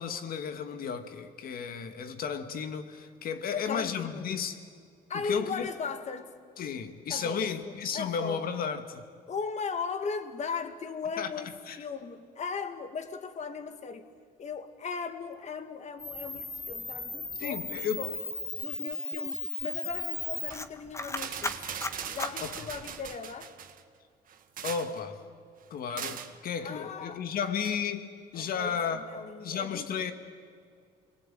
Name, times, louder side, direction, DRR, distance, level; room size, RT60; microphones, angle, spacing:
voice 1, 0.0-4.6 5.2-5.7 6.6-9.0 11.2-11.3 11.7-11.8 17.4-18.0 22.4-22.5 24.6-25.2 25.7-30.1, left 7 dB, 60° left, 2.3 m, -33 dB
voice 2, 3.5-4.4 5.1-6.3 7.1-8.5 9.3-11.5 11.8-14.1 14.4-18.2 18.6-21.6 22.1-23.5 26.6-27.3 28.3-29.9, left 5 dB, 40° left, 2.3 m, -37 dB
Camera, 16.0-23.1, left 3 dB, 15° left, 1.6 m, -36 dB
sound 1, 20.3-20.6 21.1-23.8 24.3-25.0 26.0-26.4 27.6-27.8, right 8 dB, 55° right, 1.8 m, -40 dB
28.0 x 22.0 x 9.4 m
cardioid pair, 110°, 17 cm